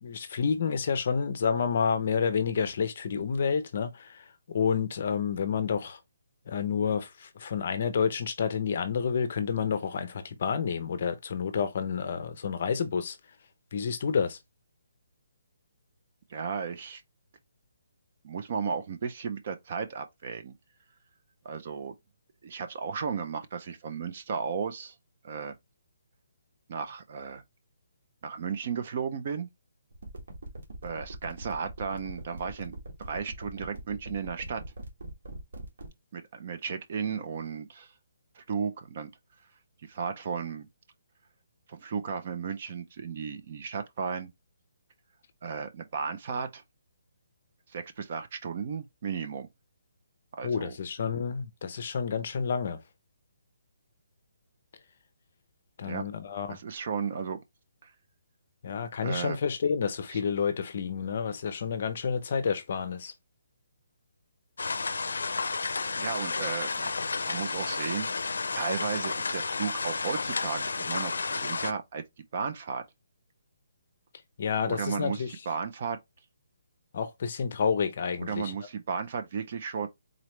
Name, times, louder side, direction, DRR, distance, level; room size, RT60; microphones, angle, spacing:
voice 1, 0.0-6.0 6.5-13.2 13.7-14.4 50.4-52.8 55.8-56.6 58.6-63.1 74.4-75.3 76.9-78.5, left 6 dB, 35° left, 0.6 m, -29 dB
voice 2, 16.3-17.0 18.2-20.5 21.4-21.9 22.4-25.0 25.2-25.5 26.7-27.4 28.2-29.5 30.8-34.6 36.1-37.9 38.4-39.1 39.8-40.7 41.7-44.3 45.4-46.6 47.7-49.5 50.4-50.8 55.8-56.1 56.5-57.4 57.8-57.9 59.0-59.4 60.1-60.2 66.0-66.9 67.3-68.1 68.5-72.0 72.3-72.8 74.7-76.0 78.2-79.9, right 6 dB, 30° right, 0.4 m, -34 dB
sound 1, 29.9-35.9, right 1 dB, 60° right, 1.5 m, -41 dB
sound 2, 64.6-71.7, left 4 dB, 85° left, 0.5 m, -32 dB
3.9 x 3.1 x 3.1 m
hypercardioid pair, 180°, 0 cm